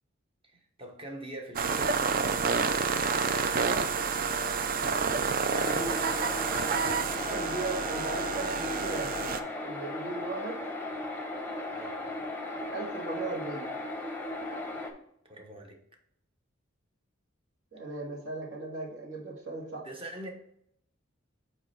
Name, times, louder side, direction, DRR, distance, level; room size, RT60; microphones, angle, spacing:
voice 1, 0.5-2.1 3.3-4.4 5.4-6.7 11.7-12.0 15.2-15.8 19.8-20.3, right 1 dB, 30° right, 1.1 m, -44 dB
sound 1, 1.6-9.4, right 5 dB, 45° right, 0.4 m, -29 dB
sound 2, 5.5-14.9, left 2 dB, 10° left, 0.8 m, -36 dB
voice 2, 5.5-6.0 7.3-9.1 9.6-10.6 12.7-13.7 17.7-19.8, right 3 dB, 70° right, 2.2 m, -37 dB
8.5 x 3.3 x 4.3 m
head